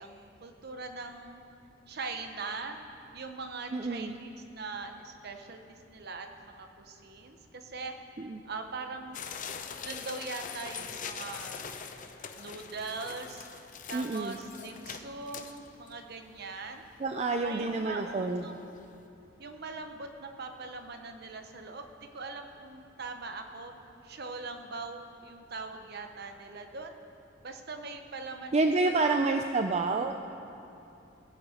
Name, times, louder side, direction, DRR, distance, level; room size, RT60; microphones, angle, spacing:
voice 1, 0.0-1.4 1.9-2.8 3.1-7.9 8.5-9.2 9.8-11.7 12.3-13.5 13.9-16.8 17.4-18.7 19.4-23.7 24.0-27.0 27.4-29.3, right 3 dB, 55° right, 6 dB, 1.0 m, -41 dB
voice 2, 3.7-4.2 8.2-8.4 13.9-14.4 17.0-18.4 28.5-30.1, right 3 dB, 35° right, 5 dB, 0.5 m, -28 dB
sound 1, 9.1-15.9 16.4-16.5 16.7-16.8 17.4-17.6 18.0-18.1 18.4-18.5, left 6 dB, 45° left, 0.7 m, -42 dB
18.5 x 9.1 x 5.0 m, 2.8 s
head